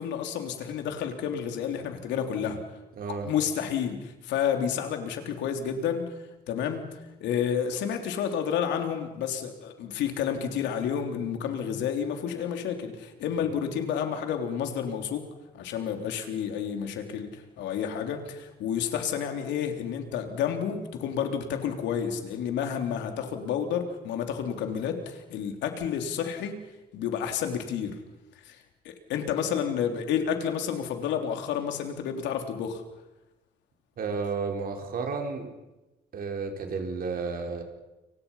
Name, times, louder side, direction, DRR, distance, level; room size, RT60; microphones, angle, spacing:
voice 1, 0.0-2.6 3.2-6.1 6.5-15.2 15.5-26.6 26.9-28.0 28.4-32.8, left 8 dB, 80° left, 5 dB, 3.6 m, -30 dB
voice 2, 3.0-3.3 34.0-35.5 36.1-37.6, right 5 dB, 55° right, 3 dB, 4.6 m, -32 dB
29.5 x 25.0 x 5.8 m, 1.0 s
cardioid pair, 100°, 18 cm